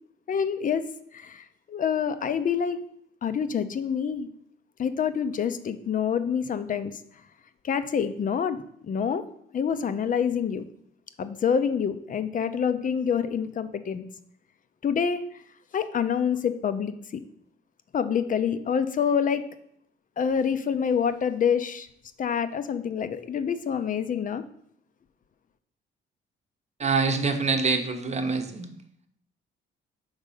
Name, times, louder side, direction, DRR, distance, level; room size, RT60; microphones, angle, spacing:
voice 1, 0.3-0.9 1.1-2.8 3.2-4.3 4.8-7.0 7.6-9.2 9.5-10.6 11.2-14.0 14.8-15.2 15.7-17.2 17.9-19.4 20.2-21.9 22.2-24.4, left 7 dB, 40° left, 11 dB, 0.5 m, -27 dB
voice 2, 26.8-28.7, right 4 dB, 35° right, 6 dB, 0.8 m, -25 dB
5.3 x 4.0 x 5.5 m, 0.70 s
cardioid pair, 90°, 20 cm